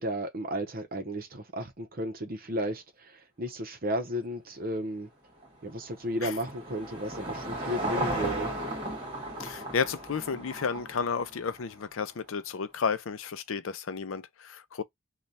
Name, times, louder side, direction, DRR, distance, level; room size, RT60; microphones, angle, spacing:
voice 1, 0.0-5.1 5.6-8.5, equal, 45° right, 0.8 m, -34 dB
Car passing by / Engine, 5.4-11.8, right 1 dB, 25° right, 1.6 m, -35 dB
voice 2, 9.4-14.8, left 6 dB, 70° left, 0.5 m, -32 dB
3.2 x 2.3 x 4.0 m
head